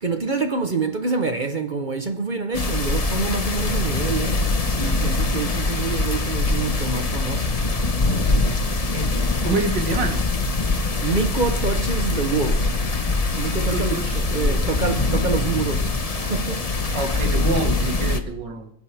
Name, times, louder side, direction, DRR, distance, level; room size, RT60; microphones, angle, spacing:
voice 1, 0.0-7.6 11.0-12.7 13.4-17.0, right 4 dB, 40° right, 0.7 m, -26 dB
sound 1, 2.5-18.2, left 3 dB, 30° left, 0.7 m, -23 dB
voice 2, 9.4-10.2 13.5-14.7 16.9-18.7, right 3 dB, 70° right, 2.4 m, -27 dB
29.0 x 11.0 x 3.4 m
omnidirectional pair, 2.0 m